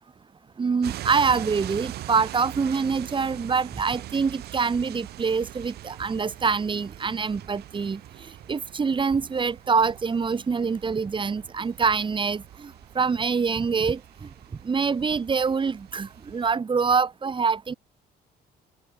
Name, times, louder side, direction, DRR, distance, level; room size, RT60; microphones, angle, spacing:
voice 1, 0.6-8.0 8.5-14.0 14.6-17.7, right 5 dB, 30° right, 5.1 m, -25 dB
sound 1, 0.8-16.5, right 14 dB, 70° right, 5.4 m, -42 dB
cardioid pair, 110°, 17 cm